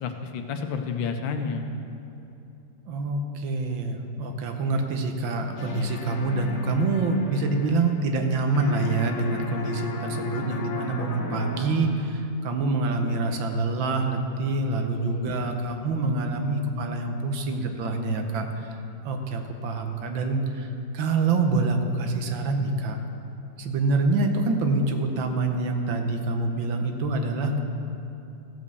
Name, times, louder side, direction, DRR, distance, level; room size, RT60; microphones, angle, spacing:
voice 1, 0.0-1.7 15.0-15.4 15.7-16.1, left 5 dB, 90° left, 5 dB, 1.6 m, -31 dB
voice 2, 2.9-18.7 19.0-23.0 23.6-27.6, right 3 dB, 85° right, 5 dB, 1.7 m, -26 dB
sound 1, 5.5-8.3 8.5-12.1, left 4 dB, 50° left, 1.2 m, -35 dB
15.0 x 5.3 x 6.7 m, 2.8 s
omnidirectional pair, 2.0 m